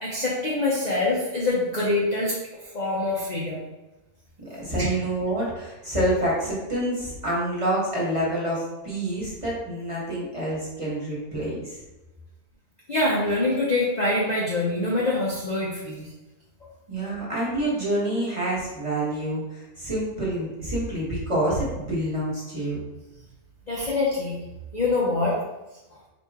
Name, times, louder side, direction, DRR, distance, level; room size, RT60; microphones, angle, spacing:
voice 1, 0.0-2.4 2.7-3.6 4.8-4.9 12.9-16.1 17.0-17.1 23.7-24.4 24.7-25.4, left 2 dB, 40° left, -5 dB, 0.7 m, -25 dB
voice 2, 4.6-11.8 16.9-22.8, right 1 dB, 20° right, -7 dB, 1.3 m, -27 dB
4.3 x 3.0 x 3.6 m, 1.1 s
omnidirectional pair, 1.6 m